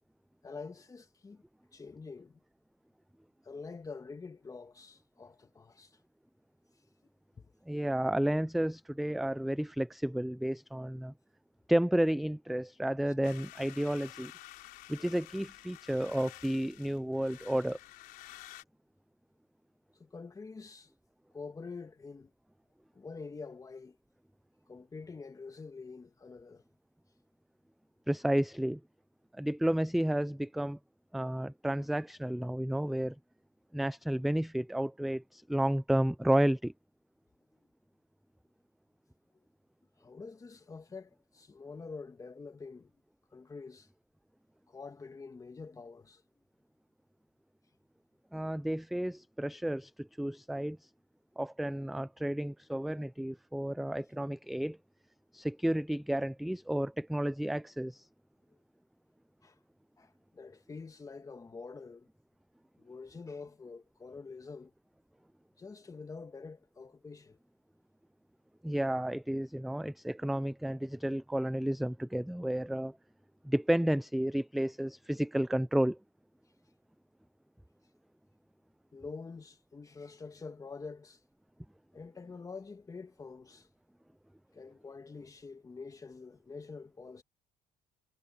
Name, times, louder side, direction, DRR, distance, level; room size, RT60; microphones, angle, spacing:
voice 1, 0.4-1.4 1.7-2.4 3.4-6.0 7.4-7.5 15.0-15.1 20.0-20.9 21.3-22.3 22.9-24.0 24.7-26.6 40.0-42.9 43.3-43.9 44.7-46.2 59.4-59.6 60.0-62.1 62.8-64.7 65.6-67.4 78.9-81.2 81.9-83.7 84.5-87.2, left 4 dB, 25° left, 2.0 m, -46 dB
voice 2, 7.7-11.1 11.7-14.3 14.9-17.8 28.1-28.8 29.3-30.8 31.1-33.2 33.7-36.7 48.3-50.8 51.4-54.8 55.3-58.1 68.6-73.0 73.4-76.0, right 1 dB, ahead, 0.4 m, -31 dB
sound 1, 13.2-18.6, left 17 dB, 85° left, 4.0 m, -51 dB
cardioid pair, 115°, 15 cm